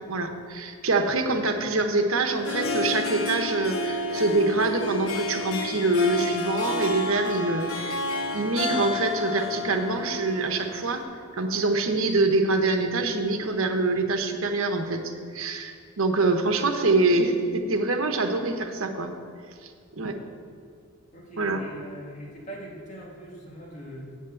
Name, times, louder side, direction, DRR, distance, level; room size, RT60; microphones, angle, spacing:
voice 1, 0.1-8.0 8.3-11.0 11.3-15.0 15.3-19.1 19.6-19.7 20.0-20.2 21.4-21.6, right 2 dB, 85° right, 5 dB, 1.0 m, -25 dB
Harp, 2.3-11.0, left 2 dB, 90° left, 1.1 m, -31 dB
voice 2, 21.1-24.1, right 1 dB, 35° left, -2 dB, 2.0 m, -42 dB
7.8 x 7.4 x 7.6 m, 2.3 s
head